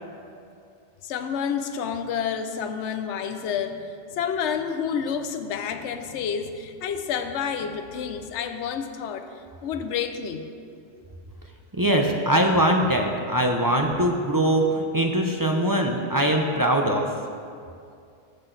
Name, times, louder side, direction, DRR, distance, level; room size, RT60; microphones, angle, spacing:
voice 1, 1.0-9.3 9.6-10.4 10.9-11.1, left 7 dB, 70° left, 8 dB, 0.9 m, -29 dB
voice 2, 11.8-17.1, right 1 dB, 25° right, 1 dB, 0.4 m, -22 dB
15.5 x 6.1 x 3.9 m, 2.4 s
omnidirectional pair, 1.3 m